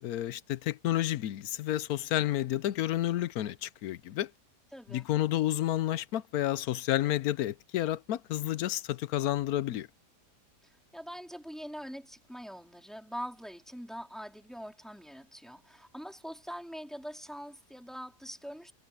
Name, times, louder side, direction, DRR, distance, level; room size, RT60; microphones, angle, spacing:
voice 1, 0.0-4.3 4.9-9.9, left 13 dB, 70° left, 1.0 m, -30 dB
voice 2, 4.7-5.1 10.6-18.7, equal, ahead, 3.8 m, -43 dB
omnidirectional pair, 1.8 m